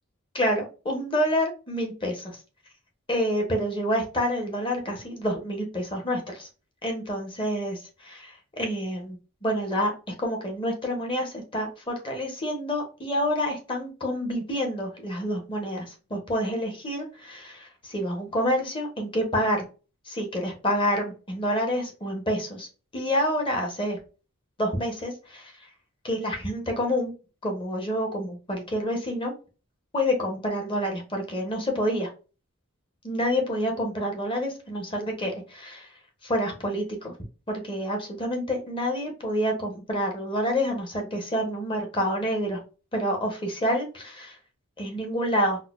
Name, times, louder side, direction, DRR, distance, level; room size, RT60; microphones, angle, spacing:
voice 1, 0.3-2.4 3.1-6.5 6.8-19.6 20.1-22.7 22.9-24.0 24.6-25.5 26.0-27.1 27.4-29.3 29.9-32.1 33.0-35.9 36.2-37.1 37.5-42.6 42.9-44.4 44.8-45.6, equal, 25° left, 2 dB, 0.8 m, -28 dB
4.0 x 2.0 x 2.3 m, 0.34 s
head